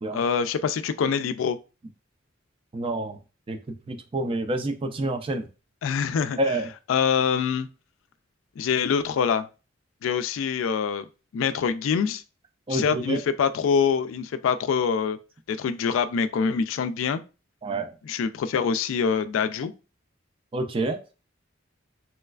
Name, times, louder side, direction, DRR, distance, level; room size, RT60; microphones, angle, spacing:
voice 1, 0.1-1.6 5.8-6.4 6.9-7.7 8.6-9.5 10.0-11.1 11.3-12.2 12.7-15.2 15.5-17.2 18.0-19.7, left 6 dB, 80° left, 0.3 m, -25 dB
voice 2, 2.7-3.2 3.5-5.5 6.4-6.7 12.7-13.2 17.6-17.9 20.5-21.0, right 1 dB, 25° right, 0.4 m, -28 dB
3.2 x 3.1 x 2.3 m
head